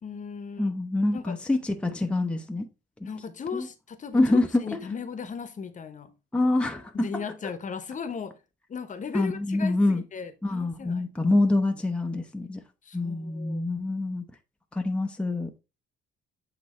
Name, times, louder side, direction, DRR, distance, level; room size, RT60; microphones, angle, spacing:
voice 1, 0.0-0.7 1.1-1.4 3.1-6.1 6.9-8.3 8.7-11.1 12.8-13.6, left 6 dB, 40° left, 1.0 m, -37 dB
voice 2, 0.6-2.7 3.5-3.7 4.1-4.8 6.3-7.1 9.1-10.0 10.4-12.6 12.9-14.2 14.7-15.6, left 2 dB, 5° left, 0.7 m, -26 dB
8.3 x 2.9 x 4.3 m
cardioid pair, 95°, 20 cm